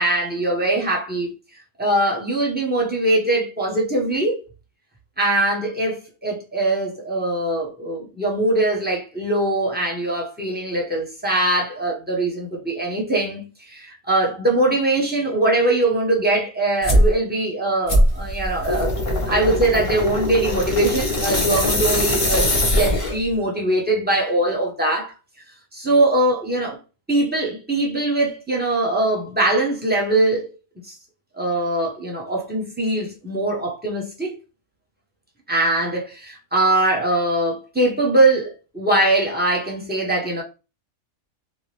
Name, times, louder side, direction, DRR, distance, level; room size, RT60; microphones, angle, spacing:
voice 1, 0.0-1.3 1.8-4.5 5.2-18.9 19.2-22.5 22.8-25.1 25.7-26.8 27.1-30.5 30.8-30.9 31.4-34.3 35.5-40.4, right 2 dB, 10° right, 0.6 m, -21 dB
sound 1, 16.8-17.1 17.9-23.3, left 1 dB, 30° left, 0.7 m, -21 dB
2.7 x 2.4 x 3.2 m
omnidirectional pair, 1.4 m